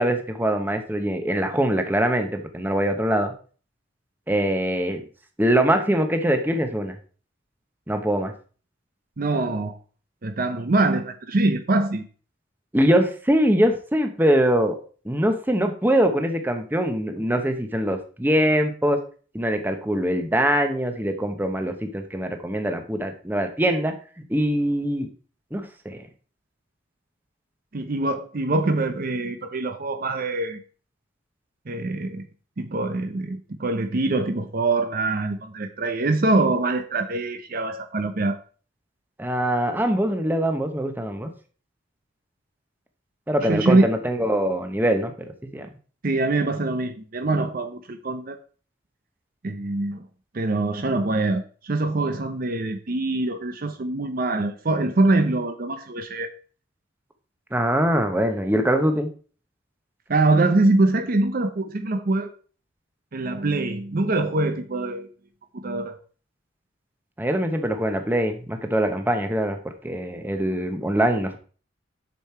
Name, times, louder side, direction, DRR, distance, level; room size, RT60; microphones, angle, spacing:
voice 1, 0.0-3.3 4.3-5.0 5.4-6.9 7.9-8.3 12.7-14.8 15.0-19.0 19.3-23.9 24.3-25.1 25.5-26.0 39.2-41.3 43.3-45.1 45.5-45.7 57.5-59.1 67.2-69.6 69.8-71.4, right 1 dB, 10° right, 6 dB, 0.9 m, -23 dB
voice 2, 9.2-9.8 10.2-12.0 27.7-30.6 31.7-32.3 32.6-38.4 43.4-43.9 46.0-48.4 49.4-50.1 50.3-56.3 60.1-62.3 63.1-65.1 65.5-66.0, right 2 dB, 50° right, 8 dB, 0.7 m, -24 dB
7.0 x 6.5 x 4.4 m, 0.40 s
head